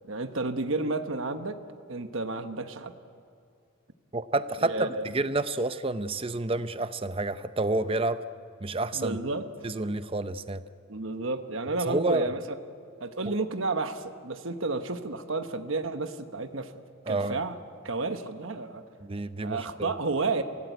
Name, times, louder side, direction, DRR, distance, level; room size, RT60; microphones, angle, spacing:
voice 1, 0.1-1.6 1.9-2.9 4.6-5.1 7.8-8.0 8.9-9.5 10.9-12.4 13.0-16.7 17.1-17.6 17.8-18.8 19.4-20.4, right 3 dB, 65° right, 8 dB, 1.1 m, -31 dB
voice 2, 4.1-8.2 8.6-9.2 9.6-10.6 11.9-12.3 17.1-17.4 19.0-19.9, right 2 dB, 25° right, 12 dB, 0.6 m, -29 dB
24.0 x 17.0 x 9.3 m, 2.4 s
head